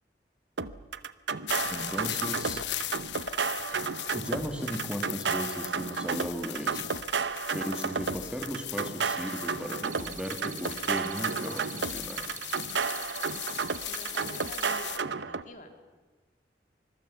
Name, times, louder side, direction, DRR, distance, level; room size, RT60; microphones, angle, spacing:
sound 1, 0.6-15.4, right 5 dB, 85° right, 0.9 m, -32 dB
sound 2, 1.5-15.0, left 12 dB, 85° left, 0.9 m, -39 dB
voice 1, 1.7-2.7 4.1-6.8 7.5-12.3, equal, 5° right, 4 dB, 2.2 m, -36 dB
sound 3, 9.9-14.7, right 10 dB, 45° right, 1.0 m, -45 dB
voice 2, 13.9-15.7, left 1 dB, 45° left, 5 dB, 2.6 m, -47 dB
25.0 x 22.0 x 7.1 m, 1.3 s
head